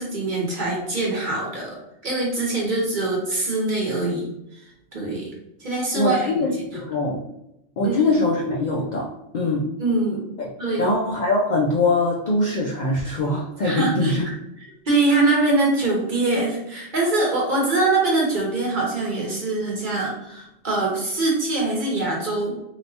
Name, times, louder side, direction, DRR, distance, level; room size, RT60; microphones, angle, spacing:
voice 1, 0.0-1.8 2.0-4.3 4.9-5.3 5.6-6.3 7.8-8.0 9.8-10.2 10.6-10.9 13.2-13.3 13.6-14.1 14.9-22.6, right 2 dB, 45° right, -2 dB, 0.8 m, -23 dB
voice 2, 5.9-7.2 7.8-9.1 9.3-9.6 10.4-10.5 10.8-14.3, left 2 dB, 70° left, -2 dB, 0.4 m, -22 dB
3.3 x 2.9 x 2.7 m, 0.84 s
omnidirectional pair, 1.4 m